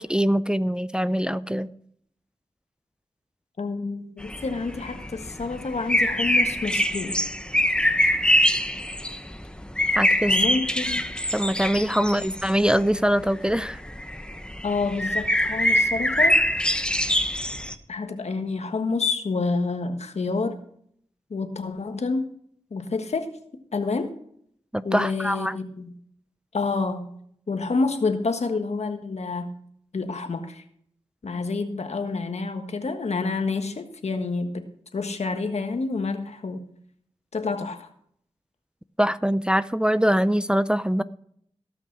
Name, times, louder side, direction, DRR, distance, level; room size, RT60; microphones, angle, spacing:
voice 1, 0.0-1.7 10.0-10.4 11.3-13.8 24.7-25.6 39.0-41.0, equal, 10° right, 14 dB, 0.5 m, -23 dB
voice 2, 3.6-7.1 10.3-11.1 14.6-16.5 17.9-20.6 21.3-22.3 22.7-23.3 23.7-24.1 24.8-25.9 26.5-27.1 27.5-29.5 29.9-30.6 31.2-36.6 37.3-37.9, left 4 dB, 70° left, 7 dB, 1.4 m, -28 dB
sound 1, 4.2-17.7, left 1 dB, 10° left, 1.1 m, -24 dB
17.5 x 6.0 x 6.0 m, 0.66 s
cardioid pair, 45°, 11 cm